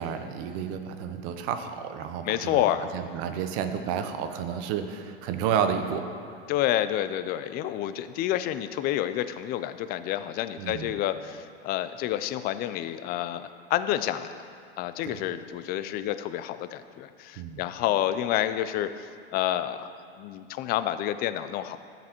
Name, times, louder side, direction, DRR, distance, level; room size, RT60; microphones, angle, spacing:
voice 1, 0.0-2.7 2.9-6.0 10.6-10.9 15.0-15.2 17.4-17.6, right 8 dB, 50° right, 8 dB, 0.8 m, -31 dB
voice 2, 2.2-2.9 6.5-14.4 14.8-19.9 20.2-21.8, left 12 dB, 30° left, 12 dB, 0.4 m, -29 dB
13.5 x 7.5 x 3.0 m, 2.3 s
hypercardioid pair, 105°, 32 cm